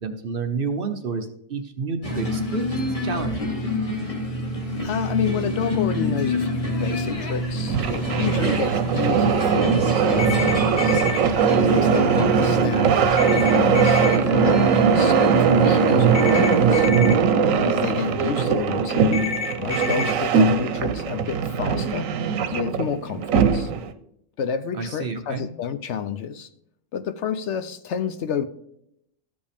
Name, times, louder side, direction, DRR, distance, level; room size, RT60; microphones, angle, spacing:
voice 1, 0.0-3.5 24.7-25.5, right 4 dB, 50° right, 7 dB, 0.8 m, -30 dB
sound 1, 2.0-16.9, equal, 25° left, 1.5 m, -27 dB
voice 2, 4.8-11.0 11.5-14.0 14.4-16.9 17.6-19.2 19.6-22.1 22.5-23.7 24.4-26.5 26.9-28.5, left 7 dB, 65° left, 10 dB, 0.8 m, -30 dB
sound 2, 7.5-23.9, right 6 dB, 85° right, 1.1 m, -20 dB
sound 3, 10.2-11.2 13.2-14.2 16.1-17.1 19.1-20.1, left 6 dB, 85° left, 1.6 m, -28 dB
14.0 x 5.2 x 3.4 m, 0.75 s
omnidirectional pair, 1.4 m